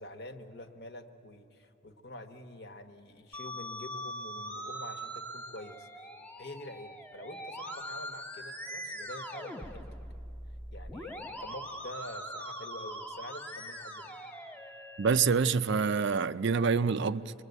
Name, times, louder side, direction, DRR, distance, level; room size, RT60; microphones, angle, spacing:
voice 1, 0.0-5.9 6.4-9.9 10.7-14.2, left 1 dB, 55° left, 1.3 m, -46 dB
Musical instrument, 3.3-15.3, equal, 10° left, 0.9 m, -42 dB
voice 2, 15.0-17.3, right 5 dB, 60° right, 0.5 m, -26 dB
27.0 x 21.5 x 8.1 m
head